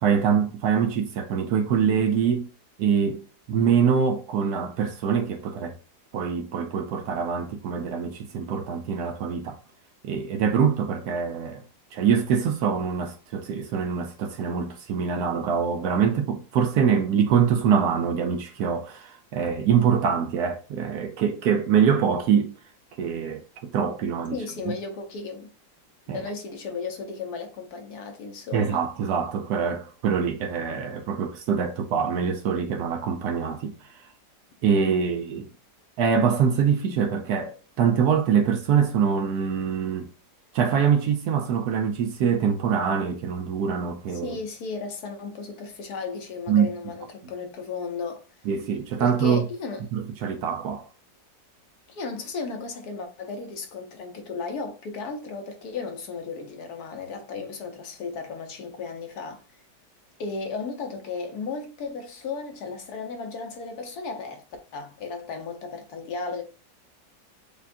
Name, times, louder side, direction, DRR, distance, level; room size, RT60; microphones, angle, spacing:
voice 1, 0.0-2.5 2.8-5.7 6.1-9.6 10.0-11.6 11.9-22.5 23.0-24.4 26.1-26.2 28.5-33.9 34.6-35.5 36.0-40.1 40.5-44.4 46.5-46.7 48.5-49.4 49.9-50.8, right 7 dB, 70° right, 1.0 m, -24 dB
voice 2, 24.3-25.5 26.1-28.8 44.2-48.3 49.0-49.9 51.9-59.4 60.2-64.4 64.7-66.4, left 4 dB, 65° left, 1.2 m, -35 dB
6.6 x 2.4 x 2.5 m
omnidirectional pair, 1.9 m